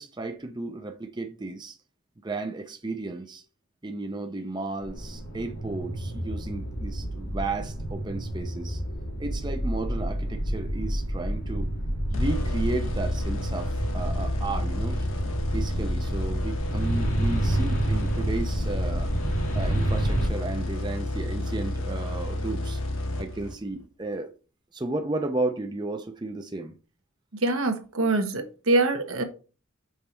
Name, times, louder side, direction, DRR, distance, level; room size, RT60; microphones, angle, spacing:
voice 1, 0.0-1.8 2.2-3.4 3.8-8.8 9.2-11.7 12.1-19.1 19.5-22.8 23.2-24.3 24.7-26.7, right 2 dB, 20° right, 0.5 m, -33 dB
sound 1, 4.8-20.3, right 1 dB, 80° left, 1.8 m, -30 dB
sound 2, 12.1-23.8, left 1 dB, 65° left, 1.2 m, -30 dB
voice 2, 27.4-29.2, right 2 dB, 75° right, 1.1 m, -24 dB
5.5 x 4.1 x 4.5 m
head